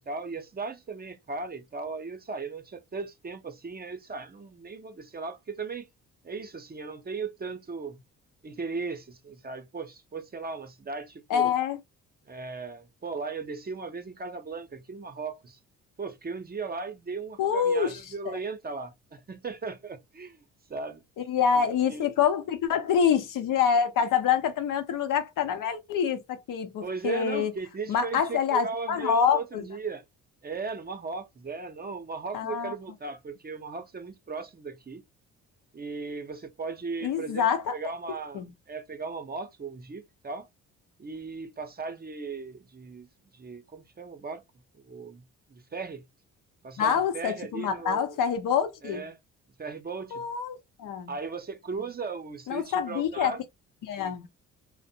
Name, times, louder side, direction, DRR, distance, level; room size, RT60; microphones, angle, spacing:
voice 1, 0.0-5.9 6.2-8.0 8.4-11.5 12.2-15.6 16.0-20.4 20.7-21.0 21.8-22.1 26.8-30.0 30.4-35.0 35.7-40.5 41.0-43.1 43.3-44.4 44.7-45.2 45.5-46.0 46.6-48.2 48.8-49.2 49.6-50.2 51.1-53.4, right 4 dB, 25° right, 0.6 m, -37 dB
voice 2, 11.3-11.8 17.4-18.0 18.3-18.4 21.3-27.5 27.9-29.6 32.3-32.7 37.0-37.7 38.3-38.5 46.8-49.0 50.1-51.1 52.5-53.3 53.8-54.3, left 7 dB, 65° left, 0.7 m, -26 dB
2.5 x 2.1 x 2.7 m
supercardioid pair, 60°, 34 cm